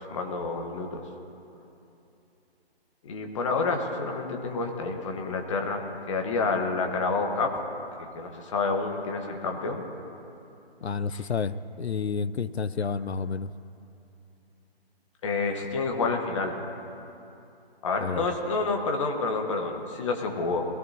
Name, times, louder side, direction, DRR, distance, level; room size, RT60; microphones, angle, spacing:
voice 1, 0.1-1.0 3.0-7.6 8.0-9.8 11.1-11.2 15.2-16.6 17.8-20.6, left 3 dB, 30° left, 3 dB, 1.3 m, -29 dB
voice 2, 10.8-13.5 18.0-18.2, left 5 dB, 85° left, 15 dB, 0.6 m, -30 dB
21.5 x 16.0 x 2.8 m, 2.8 s
figure-of-eight pair, 150°, 32 cm